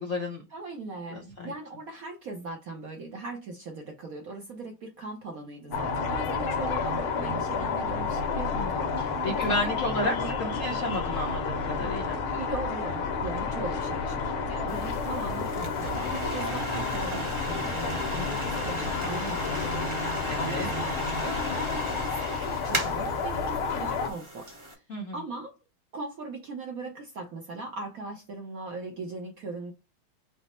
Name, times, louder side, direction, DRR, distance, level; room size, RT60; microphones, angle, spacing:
voice 1, 0.0-0.4 1.1-1.5 8.5-12.2 20.3-20.7 24.9-25.2, left 1 dB, 60° left, 0.9 m, -32 dB
voice 2, 0.5-10.7 12.3-21.0 21.2-24.8 25.1-25.6 25.9-29.7, right 3 dB, 60° right, 0.9 m, -39 dB
sound 1, 5.7-24.1, left 5 dB, 85° left, 1.7 m, -31 dB
sound 2, 5.7-21.3, right 6 dB, 90° right, 1.7 m, -41 dB
sound 3, 14.7-24.7, right 2 dB, 25° right, 0.6 m, -38 dB
5.0 x 2.0 x 4.2 m
omnidirectional pair, 2.3 m